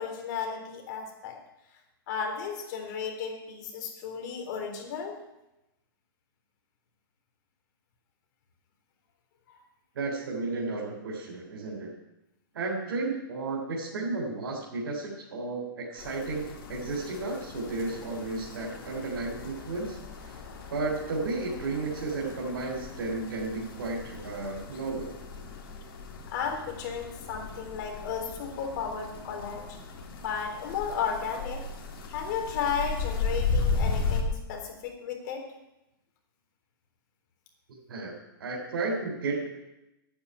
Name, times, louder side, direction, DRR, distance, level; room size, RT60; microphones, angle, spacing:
voice 1, 0.0-1.4 2.1-5.2 9.5-9.6 26.3-29.8 30.2-31.7 32.1-35.4, left 6 dB, 55° left, 3 dB, 3.7 m, -34 dB
voice 2, 9.9-11.9 12.5-20.4 20.7-25.1 37.7-38.1 38.4-39.5, right 3 dB, 80° right, -2 dB, 3.3 m, -33 dB
sound 1, 16.0-34.2, left 4 dB, 75° left, 2.8 m, -36 dB
9.7 x 8.5 x 9.5 m, 0.93 s
hypercardioid pair, 150°, 12 cm